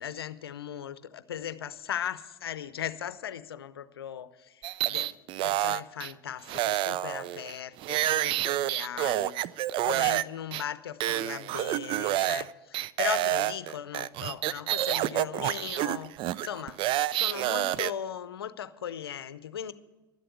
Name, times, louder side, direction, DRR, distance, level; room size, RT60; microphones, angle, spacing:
voice 1, 0.0-5.1 5.4-9.3 9.8-16.1 16.4-16.9 17.1-19.7, left 9 dB, 85° left, 15 dB, 0.6 m, -38 dB
sound 1, 4.6-6.1 6.5-10.2 10.5-10.6 11.0-12.5 12.7-17.9, right 14 dB, 45° right, 0.4 m, -28 dB
12.0 x 7.7 x 9.5 m, 1.1 s
hypercardioid pair, 90°, 12 cm